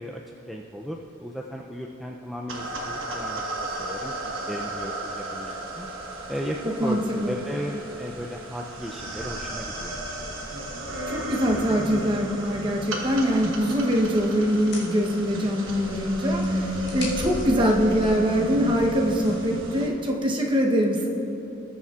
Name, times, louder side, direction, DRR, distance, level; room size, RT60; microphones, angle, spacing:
voice 1, 0.0-5.9 6.3-10.0 13.2-13.4, equal, ahead, -1 dB, 0.4 m, -35 dB
sound 1, 2.5-19.9, right 1 dB, 70° right, 1.2 m, -33 dB
voice 2, 6.6-7.4 11.1-21.1, equal, 25° right, -1 dB, 0.9 m, -23 dB
sound 2, 14.5-16.0 16.3-19.5, left 3 dB, 60° left, 1.8 m, -43 dB
19.5 x 7.0 x 2.4 m, 3.0 s
head